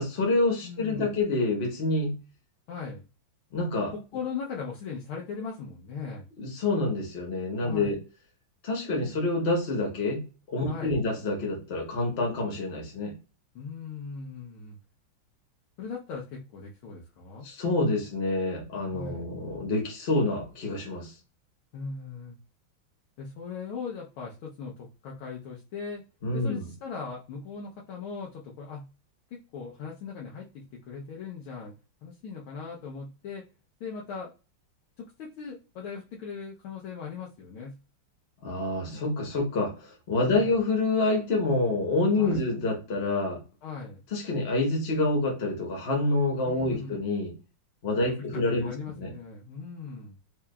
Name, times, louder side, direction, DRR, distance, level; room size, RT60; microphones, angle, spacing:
voice 1, 0.0-2.2 3.5-3.9 6.4-8.0 8.6-10.2 10.5-13.1 17.4-21.1 26.2-26.7 38.4-43.4 44.1-47.3 47.8-49.1, left 2 dB, 40° left, 0 dB, 1.1 m, -27 dB
voice 2, 0.6-1.2 2.7-3.0 3.9-6.2 7.6-8.0 10.6-11.0 13.5-14.8 15.8-17.5 18.9-19.3 21.7-22.4 23.2-26.0 26.3-28.9 29.3-31.7 32.0-33.4 33.8-34.3 35.0-37.7 40.3-40.6 42.1-42.4 43.6-44.0 46.4-47.0 48.2-50.2, left 5 dB, 85° left, -3 dB, 1.6 m, -39 dB
4.5 x 2.8 x 2.2 m, 0.32 s
omnidirectional pair, 2.3 m